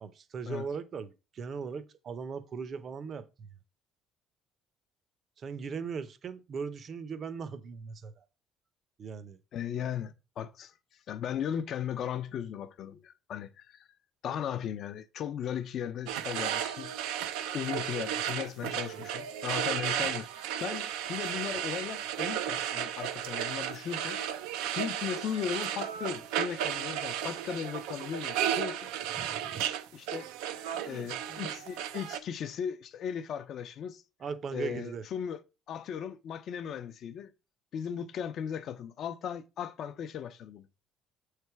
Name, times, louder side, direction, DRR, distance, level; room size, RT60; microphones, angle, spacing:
voice 1, 0.0-3.5 5.4-8.3 9.0-9.4 18.6-19.1 29.2-29.6 30.8-31.6 34.2-35.0, right 5 dB, 45° right, 0.7 m, -39 dB
voice 2, 9.5-10.7 11.1-13.9 14.2-17.2 17.5-24.2 24.8-28.9 29.9-30.3 30.9-34.0 34.5-35.4 35.7-37.3 37.7-40.7, left 8 dB, 60° left, 0.6 m, -37 dB
sound 1, 16.1-32.2, right 10 dB, 90° right, 0.5 m, -34 dB
6.5 x 3.3 x 4.6 m
cardioid pair, 95°, 0 cm